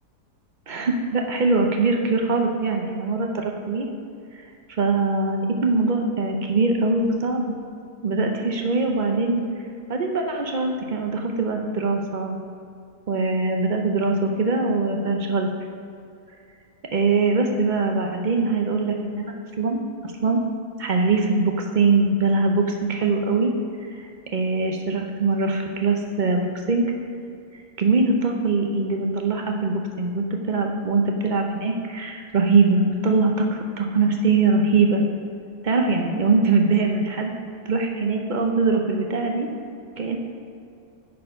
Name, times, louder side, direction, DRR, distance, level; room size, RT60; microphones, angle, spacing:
voice 1, 0.7-3.9 4.7-7.5 8.0-9.4 9.9-12.4 13.1-15.5 16.9-20.4 20.8-23.5 23.9-26.8 27.8-35.0 35.6-37.3 37.6-39.5 40.0-40.2, right 3 dB, 60° right, 2 dB, 0.4 m, -22 dB
9.4 x 4.4 x 5.4 m, 2.5 s
omnidirectional pair, 1.7 m